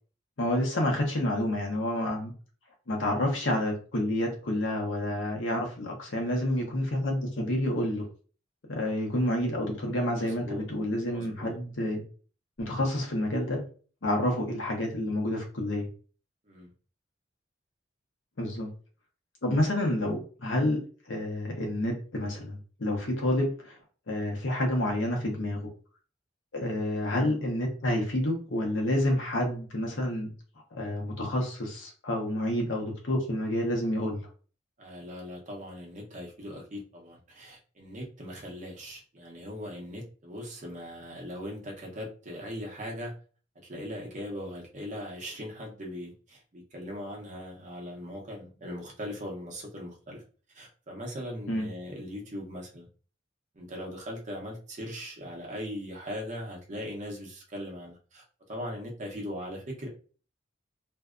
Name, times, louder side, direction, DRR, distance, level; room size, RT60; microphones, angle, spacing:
voice 1, 0.4-2.3 2.9-8.1 8.7-12.0 12.6-13.6 14.0-15.9 18.4-18.7 19.4-20.8 21.1-23.8 24.1-25.7 26.5-30.3 30.7-34.2 51.5-51.7, left 1 dB, 85° left, 1 dB, 0.8 m, -29 dB
voice 2, 10.2-10.6 11.1-11.6 16.5-16.7 34.8-43.1 43.6-50.2 50.5-52.9 53.5-59.9, equal, 40° right, -1 dB, 0.7 m, -40 dB
2.6 x 2.2 x 2.4 m, 0.39 s
head